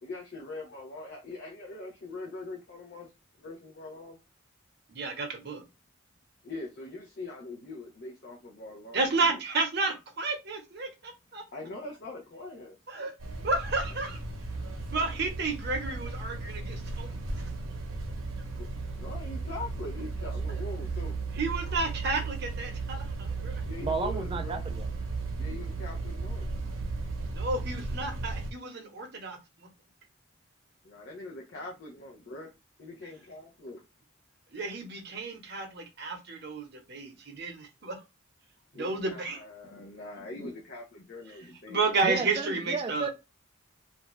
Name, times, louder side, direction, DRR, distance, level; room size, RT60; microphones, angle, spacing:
voice 1, 0.0-3.1 3.4-4.2 6.4-9.4 11.5-12.8 13.9-14.0 18.6-18.7 18.9-21.1 23.6-24.6 25.4-26.5 30.8-32.5 32.8-33.8 38.7-42.2, left 2 dB, 50° left, 0.6 m, -42 dB
voice 2, 4.9-5.6 8.9-11.4 12.9-13.1 13.4-14.2 14.9-17.1 21.4-23.6 27.3-29.7 34.5-38.0 38.7-39.4 41.7-43.1, right 3 dB, 50° right, 0.8 m, -31 dB
sound 1, 13.2-28.5, right 3 dB, 85° right, 0.8 m, -35 dB
voice 3, 23.8-24.9 42.0-43.1, right 4 dB, 25° right, 0.3 m, -33 dB
2.5 x 2.2 x 3.0 m
head